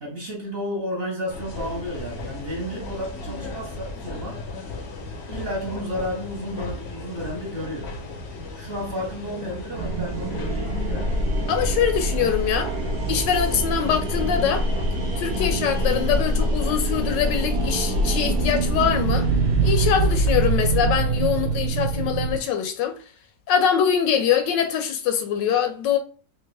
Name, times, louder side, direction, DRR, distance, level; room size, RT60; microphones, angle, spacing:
voice 1, 0.0-4.4 5.3-7.9 8.3-11.1, equal, 40° right, 1.1 m, -32 dB
sound 1, 1.3-20.9, left 2 dB, 60° left, 0.7 m, -36 dB
sound 2, 9.8-22.4, right 2 dB, 75° right, 0.5 m, -24 dB
voice 2, 11.5-12.7 13.1-14.7 15.2-19.3 19.6-23.0 23.5-26.0, left 8 dB, 80° left, 1.2 m, -23 dB
3.4 x 2.8 x 3.3 m
omnidirectional pair, 2.0 m